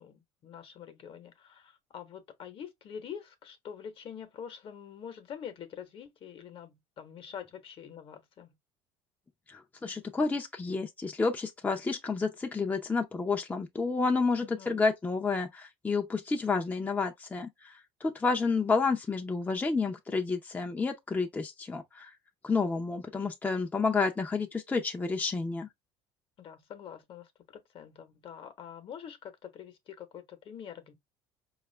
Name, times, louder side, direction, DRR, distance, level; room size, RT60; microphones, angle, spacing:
voice 1, 0.0-8.5 14.4-14.8 26.4-27.3 27.7-31.0, left 8 dB, 50° left, 1.0 m, -45 dB
voice 2, 9.5-22.1 22.4-25.7, left 4 dB, 15° left, 0.6 m, -30 dB
4.6 x 2.4 x 3.2 m
supercardioid pair, 95°, 12 cm